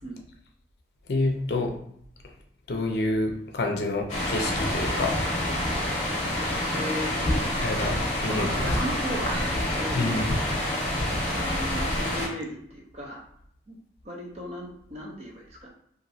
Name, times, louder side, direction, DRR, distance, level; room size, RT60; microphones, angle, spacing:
voice 1, 1.1-1.7 2.7-5.1 7.6-7.9 8.2-8.5 9.9-10.3, left 2 dB, 60° left, 2 dB, 0.5 m, -27 dB
sound 1, 4.1-12.3, left 1 dB, 40° left, 0.9 m, -27 dB
voice 2, 6.7-7.5 7.8-10.3 11.3-13.2 13.7-13.8 14.0-15.7, equal, 35° right, -2 dB, 0.6 m, -36 dB
3.0 x 2.5 x 2.6 m, 0.69 s
head